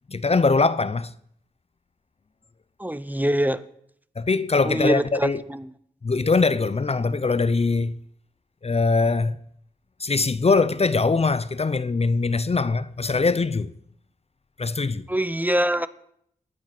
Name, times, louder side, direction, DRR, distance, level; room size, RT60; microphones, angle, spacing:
voice 1, 0.1-1.1 4.2-5.4 6.0-8.0 8.6-9.4 10.0-13.7 14.6-15.1, left 4 dB, 40° left, 0.7 m, -22 dB
voice 2, 2.8-3.6 4.6-5.6 15.1-15.9, right 1 dB, 10° right, 0.9 m, -24 dB
19.0 x 10.0 x 6.1 m
wide cardioid pair, 65°, 16 cm